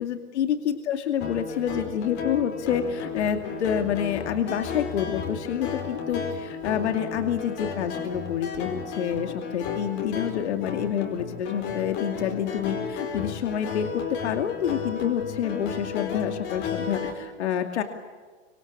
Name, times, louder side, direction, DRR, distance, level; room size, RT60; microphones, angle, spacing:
voice 1, 0.0-17.8, left 9 dB, 85° left, 6 dB, 2.5 m, -28 dB
sound 1, 1.2-17.1, left 6 dB, 35° left, 5.1 m, -33 dB
25.5 x 25.0 x 8.5 m, 1.5 s
supercardioid pair, 155°, 33 cm